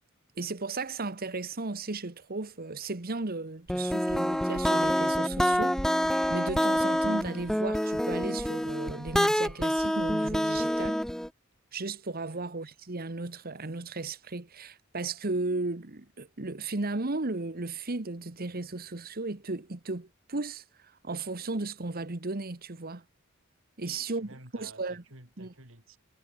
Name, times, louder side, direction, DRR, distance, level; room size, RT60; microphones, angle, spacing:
voice 1, 0.4-5.8 6.3-11.0 11.7-20.6 21.0-23.0 23.8-25.0 25.4-25.5, right 3 dB, 45° right, 1.4 m, -35 dB
sound 1, 3.7-11.3, equal, 5° left, 1.3 m, -27 dB
voice 2, 23.8-26.0, right 2 dB, 70° right, 7.8 m, -52 dB
head